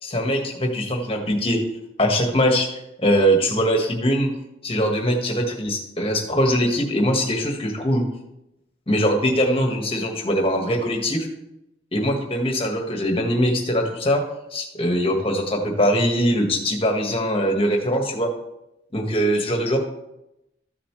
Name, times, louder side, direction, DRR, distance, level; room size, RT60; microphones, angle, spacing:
voice 1, 0.0-1.6 2.0-2.7 3.0-4.3 4.6-8.0 8.9-11.3 11.9-14.2 14.5-18.3 18.9-19.8, equal, 30° left, 2 dB, 1.7 m, -22 dB
14.0 x 7.2 x 3.2 m, 0.87 s
head